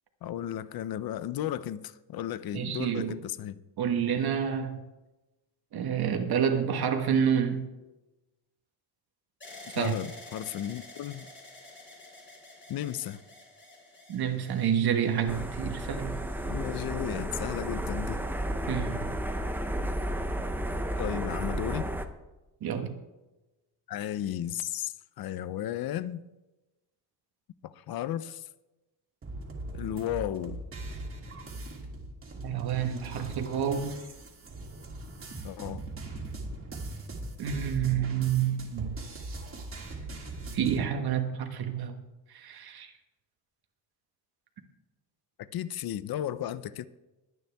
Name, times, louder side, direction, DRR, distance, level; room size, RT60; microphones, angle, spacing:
voice 1, 0.2-3.6 9.8-11.3 12.7-13.2 16.5-18.2 21.0-21.9 23.9-26.2 27.6-28.5 29.7-30.6 35.4-35.8 45.4-46.9, left 11 dB, 55° left, 0.7 m, -34 dB
voice 2, 2.5-3.1 3.8-4.8 5.7-7.7 9.7-9.9 14.1-16.2 18.7-19.1 22.6-23.0 32.4-34.0 37.4-39.0 40.5-41.9 42.3-42.9, right 8 dB, 60° right, 1.4 m, -28 dB
sound 1, 9.4-17.4 18.1-18.8, left 2 dB, 25° left, 4.0 m, -50 dB
sound 2, 15.3-22.1, right 1 dB, 5° right, 0.6 m, -32 dB
sound 3, 29.2-40.8, right 2 dB, 30° right, 2.4 m, -40 dB
21.5 x 9.2 x 3.5 m
cardioid pair, 170°, 42 cm